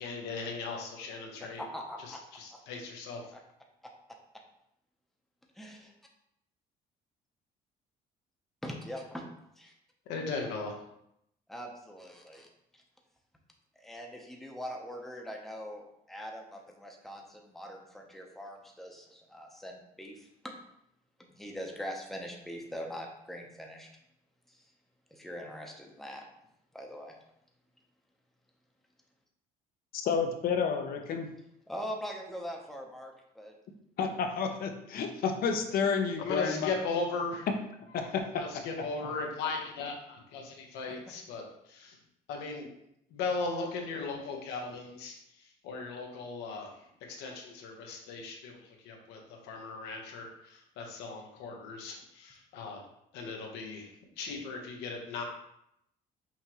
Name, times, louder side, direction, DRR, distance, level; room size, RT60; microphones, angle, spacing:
voice 1, 0.0-1.6 2.0-3.2 10.1-10.7 36.2-37.5 38.3-42.0 42.3-42.7 43.1-45.2 45.6-46.7 47.1-52.8 53.1-53.9 54.2-55.2, left 4 dB, 90° left, 1 dB, 1.0 m, -37 dB
voice 2, 1.6-2.2 2.5-2.6 3.3-3.4 5.5-5.8 8.6-9.2 9.6-9.7 11.5-12.5 12.7-12.8 13.8-20.5 21.2-23.9 24.5-24.6 25.1-26.2 26.7-27.1 31.7-33.5 40.9-41.1, equal, ahead, 0 dB, 0.7 m, -42 dB
voice 3, 30.0-31.3 34.0-36.7 37.9-38.2, left 6 dB, 60° left, 5 dB, 0.7 m, -30 dB
5.7 x 3.0 x 3.0 m, 0.77 s
cardioid pair, 110°, 17 cm